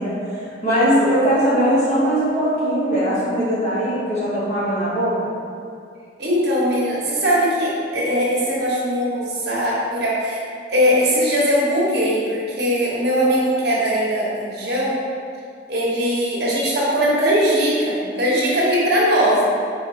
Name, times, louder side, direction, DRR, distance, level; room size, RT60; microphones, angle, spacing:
voice 1, 0.0-5.3, equal, 35° left, -9 dB, 1.3 m, -20 dB
voice 2, 6.2-10.4 10.7-15.0 15.7-19.5, equal, 60° right, -6 dB, 1.0 m, -20 dB
5.1 x 3.7 x 2.7 m, 2.4 s
head